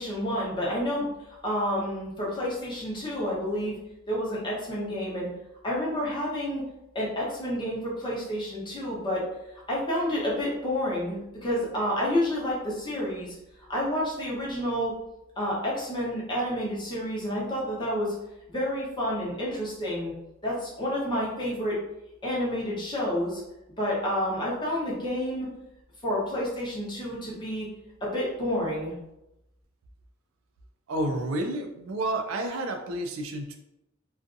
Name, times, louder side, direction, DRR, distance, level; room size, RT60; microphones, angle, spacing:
voice 1, 0.0-3.8 4.1-5.3 5.6-6.6 6.9-9.3 9.5-11.2 11.4-13.3 13.7-14.9 15.4-18.1 18.5-20.1 20.4-21.8 22.2-23.4 23.8-25.5 26.0-27.7 28.0-28.9, equal, 25° left, -5 dB, 0.8 m, -29 dB
voice 2, 30.9-33.6, right 1 dB, 80° right, 4 dB, 0.4 m, -30 dB
2.5 x 2.4 x 2.5 m, 0.89 s
head